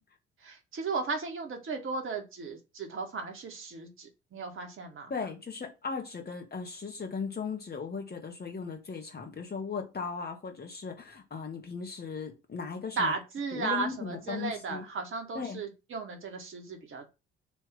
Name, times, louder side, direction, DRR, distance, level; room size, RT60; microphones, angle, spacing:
voice 1, 0.4-5.1 13.0-17.1, right 4 dB, 45° right, 1.7 m, -35 dB
voice 2, 5.1-13.1 13.5-14.8 15.3-15.6, left 5 dB, 35° left, 1.9 m, -37 dB
6.2 x 3.0 x 5.4 m
figure-of-eight pair, 50°, 29 cm